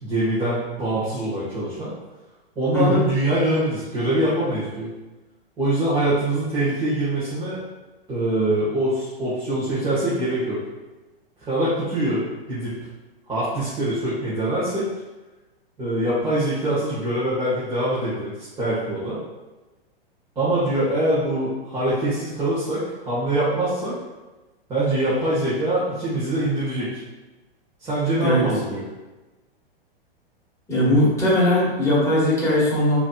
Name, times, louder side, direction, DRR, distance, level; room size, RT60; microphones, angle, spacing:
voice 1, 0.0-1.9 2.5-4.9 5.6-7.6 8.1-10.6 11.4-12.2 12.5-12.7 13.3-14.9 15.8-19.2 20.3-23.9 24.7-26.9 27.8-28.8, right 1 dB, 15° right, -11 dB, 1.5 m, -23 dB
voice 2, 2.7-3.0 28.2-28.4 30.7-33.0, left 1 dB, 10° left, -7 dB, 1.5 m, -19 dB
4.9 x 3.0 x 2.4 m, 1.1 s
hypercardioid pair, 120°, 30 cm